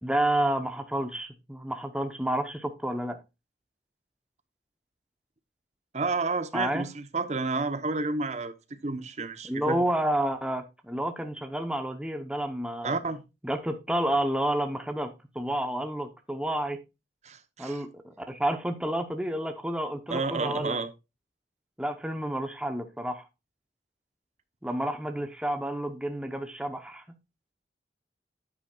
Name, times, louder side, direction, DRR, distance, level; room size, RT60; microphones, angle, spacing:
voice 1, 0.0-3.2 6.5-6.9 9.5-12.9 13.4-16.8 17.6-20.8 21.8-23.2 24.6-27.0, right 1 dB, 5° right, 0.9 m, -30 dB
voice 2, 5.9-9.8 12.8-13.2 17.2-17.8 20.1-20.9, right 3 dB, 40° right, 1.0 m, -30 dB
10.0 x 9.0 x 2.4 m
head